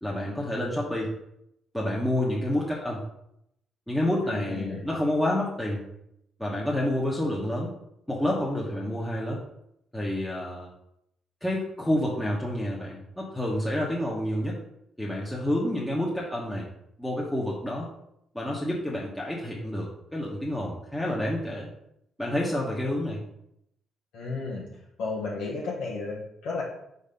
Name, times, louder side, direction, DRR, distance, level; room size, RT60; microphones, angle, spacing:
voice 1, 0.0-1.1 1.7-3.0 3.9-5.8 6.4-7.7 8.1-9.4 9.9-10.7 11.4-14.6 15.0-16.7 17.0-17.9 18.3-21.7 22.2-23.2, left 1 dB, 5° left, -5 dB, 1.2 m, -29 dB
voice 2, 4.2-4.8 24.1-24.7 25.0-26.6, left 3 dB, 85° left, -5 dB, 1.4 m, -33 dB
4.5 x 4.1 x 5.3 m, 0.78 s
cardioid pair, 90°, 0 cm